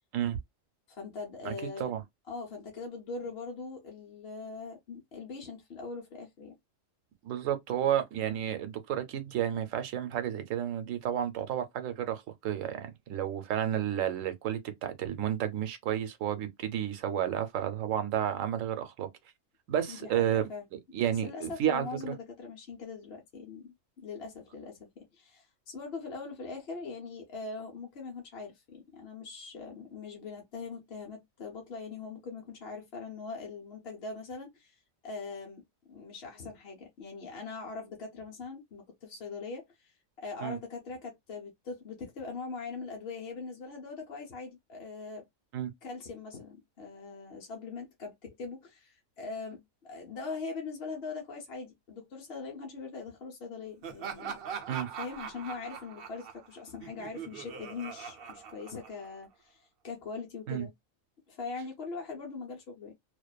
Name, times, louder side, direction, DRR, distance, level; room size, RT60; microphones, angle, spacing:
voice 1, 0.9-1.9 2.3-6.6 19.9-20.6 21.0-35.6 35.9-45.3 45.8-54.4 55.0-60.7 61.3-62.9, left 4 dB, 55° left, 1.0 m, -42 dB
voice 2, 7.2-19.1 19.7-22.1 40.4-40.6 45.5-45.7 54.7-54.9 60.5-60.7, right 10 dB, 85° right, 1.0 m, -31 dB
Laughter, 53.8-59.3, right 7 dB, 60° right, 0.7 m, -42 dB
2.5 x 2.2 x 2.2 m
omnidirectional pair, 1.3 m